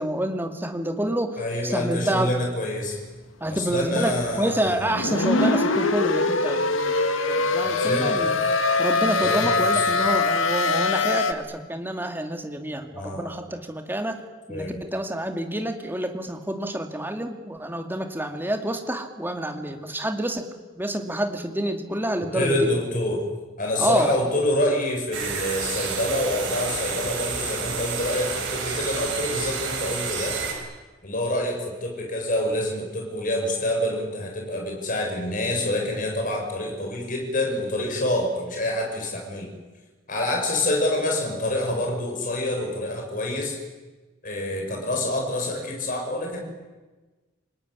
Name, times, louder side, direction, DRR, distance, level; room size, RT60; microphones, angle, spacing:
voice 1, 0.0-2.3 3.4-8.4 8.8-14.2 14.5-20.5 20.8-22.7 23.8-24.2, right 1 dB, 10° right, 5 dB, 2.4 m, -28 dB
voice 2, 1.4-3.0 3.5-5.0 7.6-8.3 9.2-10.0 12.9-13.4 14.5-14.8 22.2-23.2 23.6-30.4 31.0-39.5 40.1-43.6 44.2-46.4, left 1 dB, 40° left, 1 dB, 6.6 m, -27 dB
sound 1, 4.7-11.3, left 3 dB, 80° left, 1.9 m, -23 dB
sound 2, 25.1-30.5, right 5 dB, 70° right, 7.5 m, -30 dB
28.5 x 19.0 x 9.9 m, 1.3 s
head